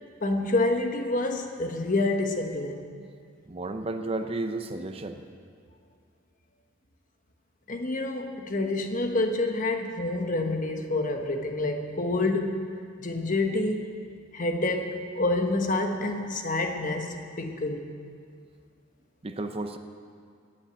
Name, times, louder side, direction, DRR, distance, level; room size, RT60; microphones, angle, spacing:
voice 1, 0.2-2.9 7.7-12.7 13.0-13.9 14.3-17.8, left 2 dB, 40° left, 4 dB, 1.2 m, -28 dB
voice 2, 3.5-5.2 19.2-19.8, right 2 dB, 30° right, 7 dB, 0.6 m, -32 dB
19.0 x 7.7 x 8.0 m, 2.2 s
head